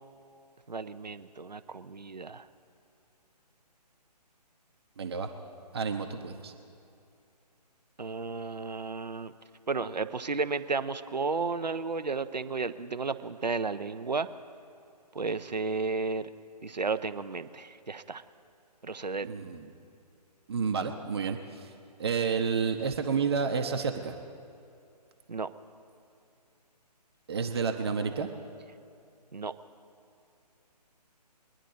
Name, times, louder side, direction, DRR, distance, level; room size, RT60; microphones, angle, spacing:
voice 1, 0.7-2.5 8.0-9.3 9.7-14.3 15.1-16.3 16.6-18.2 18.8-19.3 25.3-25.5 29.3-29.5, right 4 dB, 80° right, 12 dB, 0.7 m, -33 dB
voice 2, 5.0-5.3 5.7-6.5 19.2-19.7 20.5-21.7 22.0-24.1 27.3-28.3, right 5 dB, 40° right, 4 dB, 0.9 m, -30 dB
22.5 x 10.0 x 3.9 m, 2.5 s
figure-of-eight pair, 140°, 21 cm